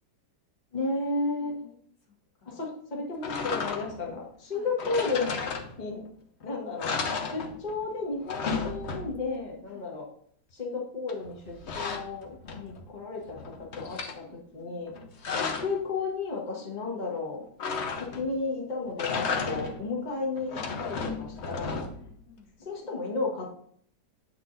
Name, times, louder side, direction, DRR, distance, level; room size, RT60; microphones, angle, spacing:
voice 1, 0.7-1.6 2.4-5.4 5.8-6.0 6.4-6.9 7.2-10.0 10.5-14.9 15.6-17.5 18.0-21.8 22.6-23.5, left 3 dB, 25° left, -2 dB, 1.5 m, -33 dB
voice 2, 1.4-2.7 4.5-4.7 9.7-10.0 14.1-14.8 21.6-22.5, left 5 dB, 75° left, 0 dB, 2.2 m, -56 dB
sound 1, 3.2-4.1 4.8-6.1 6.4-6.5 6.8-9.4 11.1-12.9 13.3-14.2 14.9-15.8 17.6-18.4 18.9-19.9 20.4-22.1, left 5 dB, 50° left, 0.8 m, -33 dB
8.7 x 4.1 x 3.9 m, 0.62 s
omnidirectional pair, 1.9 m